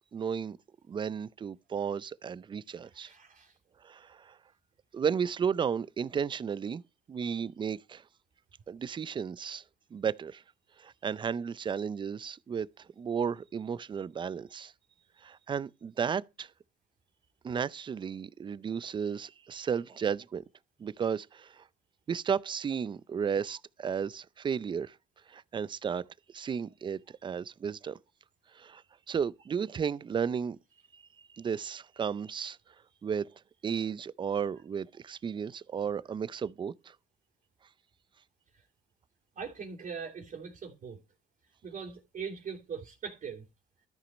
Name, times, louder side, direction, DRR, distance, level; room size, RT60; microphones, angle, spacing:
voice 1, 0.1-0.6 0.9-3.1 3.8-4.4 4.9-6.8 7.1-8.0 8.7-9.6 9.9-10.4 10.8-14.7 15.2-16.5 17.4-20.4 20.8-21.6 22.1-24.9 25.3-28.0 28.5-28.8 29.1-30.6 30.9-32.6 33.0-33.3 33.6-37.0, right 7 dB, 30° right, 0.5 m, -34 dB
voice 2, 3.0-3.5 38.5-38.6 39.3-41.0 41.6-43.4, right 6 dB, 50° right, 3.0 m, -41 dB
13.0 x 5.8 x 5.3 m
cardioid pair, 110°, 17 cm